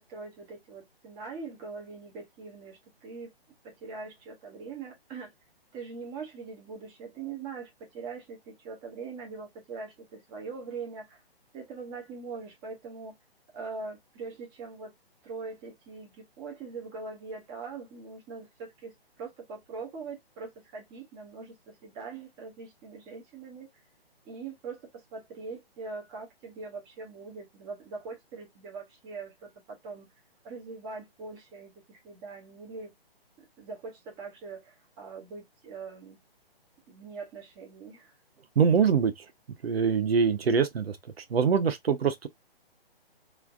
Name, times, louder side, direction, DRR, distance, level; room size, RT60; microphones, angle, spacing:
voice 1, 0.0-3.3 3.6-5.3 5.7-11.2 11.5-13.2 13.5-14.9 15.2-23.7 24.2-30.1 30.4-32.9 33.4-36.2 36.9-38.2, right 4 dB, 15° right, 0.7 m, -42 dB
voice 2, 38.6-39.1 39.6-42.3, right 6 dB, 75° right, 0.8 m, -24 dB
3.2 x 2.5 x 2.4 m
hypercardioid pair, 145°, 31 cm